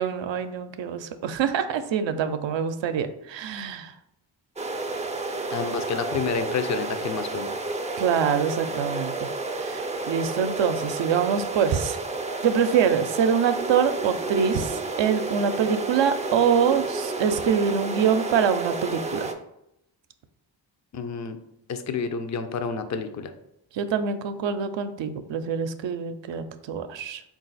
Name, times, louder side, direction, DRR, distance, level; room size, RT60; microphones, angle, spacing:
voice 1, 0.0-3.9 8.0-9.3 9.6-12.0 12.4-19.3 23.7-27.2, right 7 dB, 70° right, 9 dB, 0.5 m, -25 dB
sound 1, 4.6-19.3, right 3 dB, 15° right, 0.4 m, -31 dB
voice 2, 5.5-7.5 20.9-21.4 21.7-23.3, left 5 dB, 40° left, 8 dB, 0.5 m, -29 dB
3.9 x 2.4 x 3.9 m, 0.80 s
cardioid pair, 55°, 47 cm